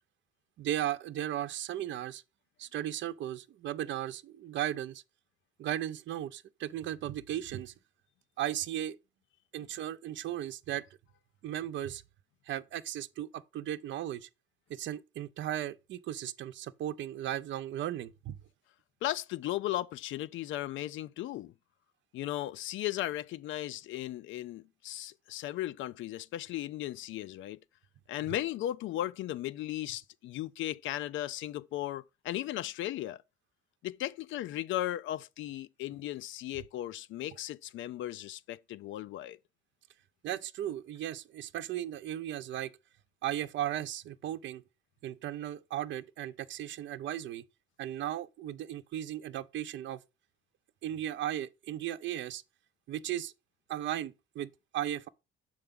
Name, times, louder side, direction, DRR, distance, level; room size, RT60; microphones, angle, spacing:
voice 1, 0.6-2.2 2.6-5.0 5.6-7.7 8.4-9.0 9.5-10.9 11.4-12.0 12.5-14.3 14.7-18.4 40.2-42.7 43.2-44.6 45.0-47.4 47.8-50.0 50.8-52.4 52.9-53.3 53.7-55.1, right 12 dB, 70° right, 0.5 m, -36 dB
voice 2, 19.0-21.5 22.1-27.6 28.1-33.2 33.8-39.4, left 14 dB, 75° left, 0.4 m, -36 dB
6.8 x 4.7 x 3.6 m
cardioid pair, 90°, 20 cm